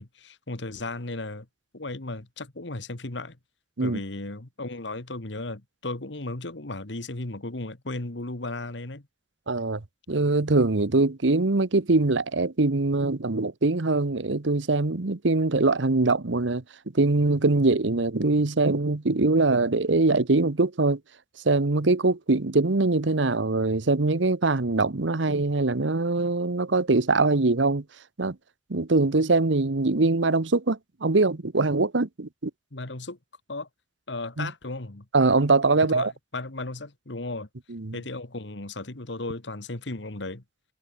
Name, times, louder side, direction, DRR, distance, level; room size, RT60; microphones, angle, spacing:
voice 1, 0.0-1.5 1.7-3.4 3.8-9.1 32.7-33.2 33.5-33.7 34.1-35.1 35.8-37.5 37.9-40.4, left 2 dB, 75° left, 1.8 m, -35 dB
voice 2, 9.5-9.8 10.1-16.6 16.9-21.0 21.4-27.8 28.2-28.4 28.7-32.5 34.4-34.5 35.1-36.1 37.7-38.0, right 3 dB, 85° right, 1.1 m, -23 dB
head